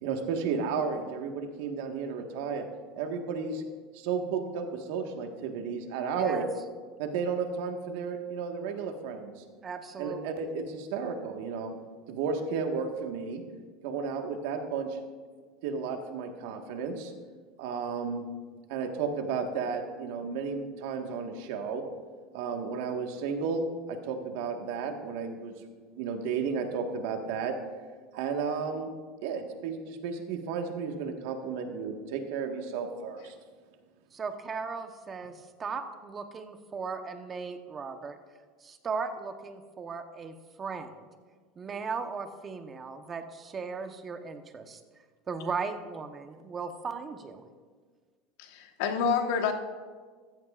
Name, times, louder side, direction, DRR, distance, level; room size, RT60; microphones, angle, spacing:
voice 1, 0.0-2.7 3.0-3.6 3.9-6.4 7.0-9.3 10.0-11.7 12.1-13.4 13.8-15.0 15.6-17.1 17.6-18.2 18.7-21.8 22.3-25.5 25.9-27.5 28.1-28.9 29.2-33.3, right 5 dB, 75° right, 4 dB, 1.5 m, -33 dB
voice 2, 6.1-6.5 9.6-10.2 34.1-38.2 38.6-41.1 41.6-44.8 45.3-47.5, right 5 dB, 25° right, 7 dB, 1.0 m, -37 dB
voice 3, 48.4-49.5, left 6 dB, 75° left, 5 dB, 1.3 m, -28 dB
15.0 x 14.5 x 2.5 m, 1.5 s
supercardioid pair, 135°, 0 cm